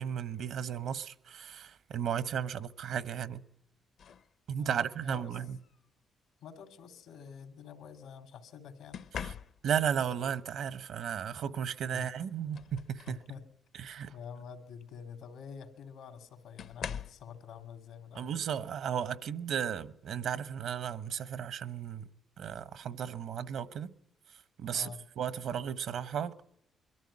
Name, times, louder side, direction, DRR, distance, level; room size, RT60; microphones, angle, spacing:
voice 1, 0.0-3.4 4.5-5.6 9.2-9.3 9.6-13.2 13.7-14.1 18.1-22.1 22.4-23.9 24.6-24.9 25.2-26.3, right 8 dB, 75° right, 1.0 m, -34 dB
sound 1, 4.0-4.3 5.6-5.9 8.9-9.9 11.7-11.8 12.2-13.3 13.8-14.1 15.4-15.5 16.6-17.3 19.0-19.2 19.7-20.0, left 7 dB, 70° left, 0.8 m, -43 dB
voice 2, 4.6-5.4 6.4-9.1 10.2-10.3 11.9-12.1 13.1-13.4 14.1-18.3 24.7-25.1, left 7 dB, 85° left, 2.6 m, -47 dB
22.5 x 14.0 x 9.8 m
cardioid pair, 90°, 0 cm